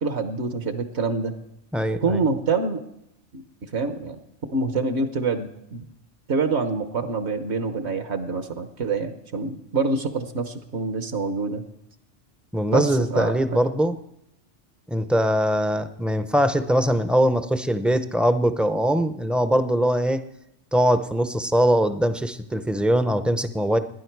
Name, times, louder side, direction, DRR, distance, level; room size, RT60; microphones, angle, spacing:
voice 1, 0.0-1.3 2.0-2.8 3.3-4.2 4.5-5.8 6.3-11.6 12.7-13.6, right 4 dB, 65° right, 8 dB, 1.2 m, -26 dB
voice 2, 1.7-2.2 12.5-14.0 14.9-20.2 20.7-23.8, equal, ahead, 10 dB, 0.4 m, -22 dB
19.0 x 10.5 x 4.6 m, 0.81 s
omnidirectional pair, 1.2 m